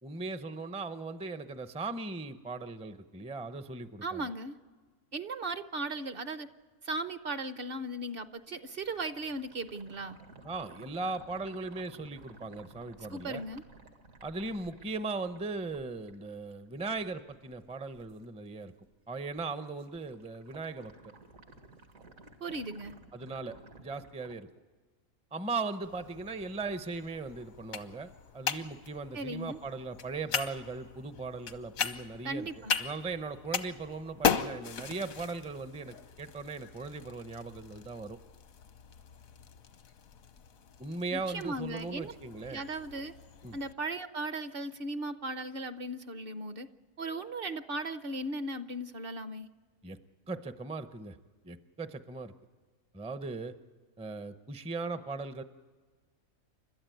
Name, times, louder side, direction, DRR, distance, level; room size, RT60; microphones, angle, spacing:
voice 1, 0.0-4.3 10.4-13.4 14.2-18.7 19.1-20.9 23.1-24.5 25.3-32.5 32.8-38.2 40.8-42.6 43.4-43.6 49.8-50.0 50.3-51.2 51.4-52.3 52.9-53.5 54.0-55.4, right 3 dB, 5° right, 11 dB, 0.5 m, -38 dB
voice 2, 4.0-4.6 5.1-6.5 6.8-10.2 13.1-13.6 22.4-23.0 29.1-29.6 32.2-32.8 41.1-42.1 42.5-43.1 43.5-46.7 47.0-49.5, right 2 dB, 50° right, 11 dB, 0.9 m, -37 dB
sound 1, 7.9-18.2 18.6-19.1 19.3-24.4, right 2 dB, 75° right, 2.3 m, -55 dB
sound 2, 25.8-43.7, left 6 dB, 80° left, 1.4 m, -38 dB
30.0 x 13.0 x 9.2 m, 1.4 s
omnidirectional pair, 1.4 m